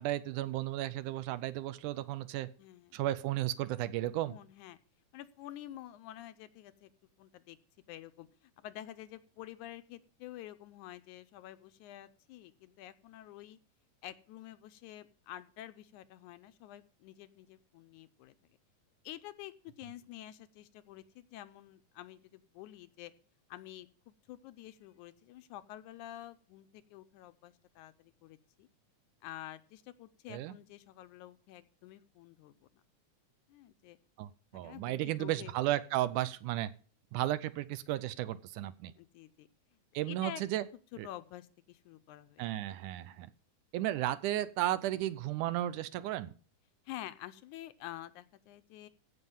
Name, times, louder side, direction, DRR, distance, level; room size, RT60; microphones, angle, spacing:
voice 1, 0.0-2.5 2.9-4.4 30.3-30.5 34.2-36.7 37.1-38.9 39.9-40.7 41.0-41.1 42.4-43.3 43.7-46.3, right 14 dB, 80° right, 15 dB, 2.1 m, -34 dB
voice 2, 2.6-3.0 4.3-4.8 5.1-6.9 7.2-7.6 7.9-13.6 14.0-18.3 19.0-23.1 23.5-28.7 29.2-32.5 33.5-34.0 34.6-35.5 39.0-39.5 40.0-40.4 40.9-42.4 46.9-48.9, left 13 dB, 80° left, 12 dB, 2.0 m, -49 dB
15.5 x 5.8 x 5.4 m, 0.39 s
omnidirectional pair, 3.7 m